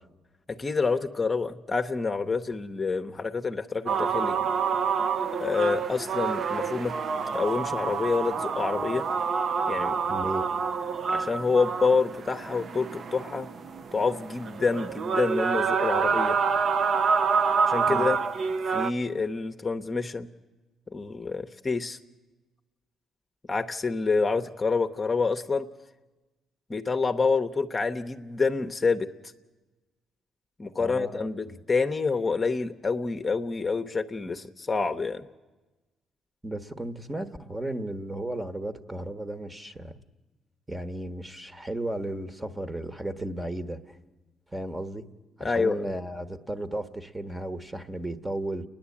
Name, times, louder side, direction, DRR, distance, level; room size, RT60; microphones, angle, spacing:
voice 1, 0.5-4.4 5.3-6.9 7.3-9.0 9.7-10.0 11.1-13.5 13.9-16.4 17.6-18.2 18.7-20.3 20.9-22.0 23.5-25.7 26.7-29.1 30.6-35.3 45.4-45.8, left 4 dB, 30° left, 6 dB, 0.9 m, -27 dB
sound 1, 3.9-18.9, right 5 dB, 55° right, 0.8 m, -27 dB
voice 2, 10.1-10.5 17.9-18.1 30.8-31.6 36.4-39.9 40.7-44.0 44.5-45.1 45.4-48.6, right 1 dB, 15° right, 11 dB, 1.3 m, -34 dB
30.0 x 10.5 x 8.5 m, 1.2 s
supercardioid pair, 65°, 0 cm